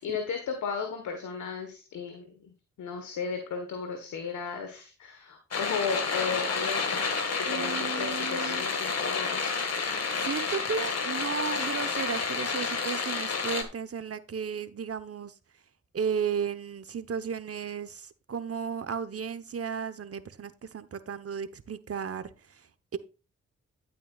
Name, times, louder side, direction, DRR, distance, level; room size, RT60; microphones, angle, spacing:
voice 1, 0.0-2.5 2.8-7.1 7.4-9.6, left 5 dB, 80° left, 1.5 m, -35 dB
sound 1, 5.5-13.6, left 4 dB, 60° left, 1.9 m, -30 dB
voice 2, 7.5-8.6 10.2-15.3 15.9-22.6 22.9-23.0, right 6 dB, 50° right, 1.1 m, -34 dB
12.5 x 8.5 x 2.4 m
supercardioid pair, 40°, 29 cm